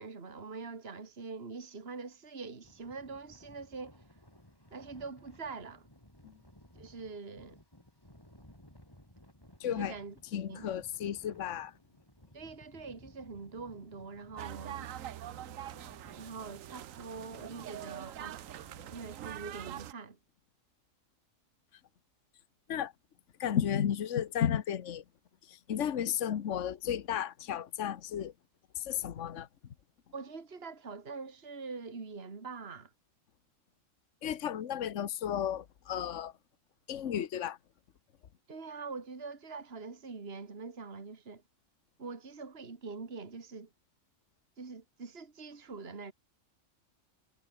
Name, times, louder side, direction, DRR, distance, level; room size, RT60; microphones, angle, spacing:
voice 1, 0.0-4.0 4.7-5.9 6.8-7.6 9.6-10.2 10.5-10.7 12.3-14.9 16.2-18.5 18.9-20.2 30.1-32.9 38.5-41.4 42.0-43.7 44.6-46.1, right 4 dB, 50° right, 2.3 m, -44 dB
sound 1, 2.6-19.1, left 1 dB, 15° left, 5.7 m, -58 dB
voice 2, 9.6-9.9 10.3-11.7 22.7-22.9 23.4-25.0 25.7-28.3 28.8-29.5 34.2-36.3 36.9-37.6, left 9 dB, 65° left, 1.3 m, -33 dB
sound 2, 14.4-19.9, right 12 dB, 75° right, 1.1 m, -44 dB
omnidirectional pair, 1.4 m